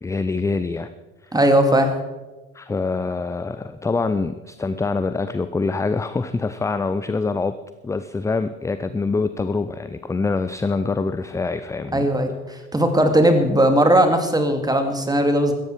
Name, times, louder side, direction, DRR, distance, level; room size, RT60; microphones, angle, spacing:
voice 1, 0.0-0.9 2.5-7.6 7.8-12.1, left 3 dB, 10° left, 12 dB, 0.5 m, -25 dB
voice 2, 1.3-1.9 11.9-15.5, right 1 dB, 10° right, 6 dB, 2.4 m, -18 dB
16.5 x 14.0 x 4.7 m, 1.1 s
hypercardioid pair, 70°, 41 cm